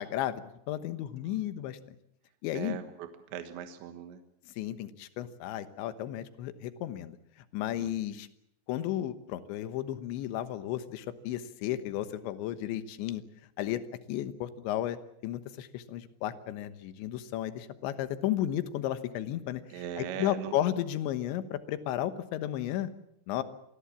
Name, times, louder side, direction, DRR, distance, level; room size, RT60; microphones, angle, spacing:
voice 1, 0.0-1.8 2.4-2.8 4.6-7.2 7.5-8.3 8.7-13.2 13.6-13.8 14.1-15.0 15.2-19.6 20.0-22.9 23.3-23.4, left 12 dB, 80° left, 11 dB, 3.5 m, -33 dB
voice 2, 2.5-4.2 7.8-7.9 19.7-20.6, right 9 dB, 80° right, 7 dB, 3.6 m, -40 dB
26.5 x 20.0 x 7.3 m, 0.76 s
omnidirectional pair, 5.2 m